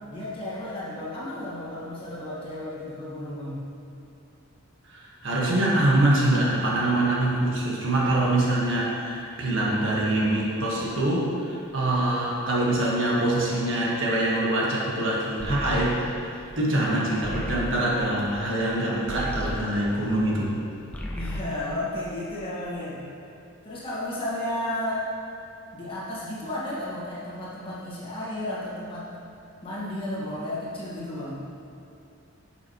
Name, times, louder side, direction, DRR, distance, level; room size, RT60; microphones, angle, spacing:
voice 1, 0.1-3.7 21.2-23.0 23.6-25.0 25.7-29.1 29.6-31.4, left 1 dB, 25° left, -8 dB, 1.7 m, -33 dB
voice 2, 4.9-20.5, right 1 dB, 65° right, -5 dB, 1.5 m, -24 dB
sound 1, 15.4-20.6 20.8-22.6, left 1 dB, 5° left, 0.5 m, -36 dB
11.0 x 5.9 x 3.1 m, 2.6 s
head